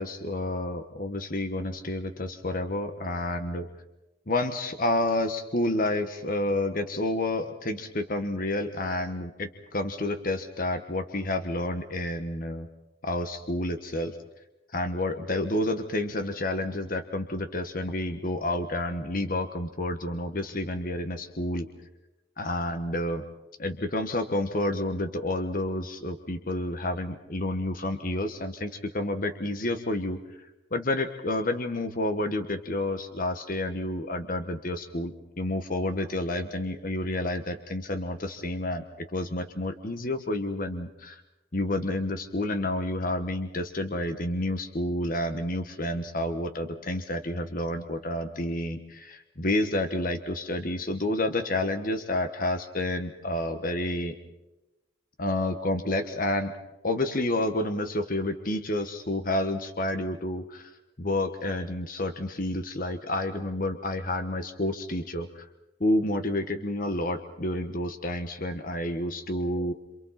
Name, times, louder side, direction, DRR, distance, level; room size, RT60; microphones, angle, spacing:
voice 1, 0.0-3.7 4.3-12.7 13.0-14.2 14.7-21.7 22.4-23.2 23.6-30.2 30.7-41.2 41.5-54.2 55.2-56.5 56.8-60.7 61.0-65.5 65.8-69.7, left 1 dB, 50° left, 7 dB, 1.5 m, -29 dB
29.0 x 27.5 x 4.4 m, 0.98 s
head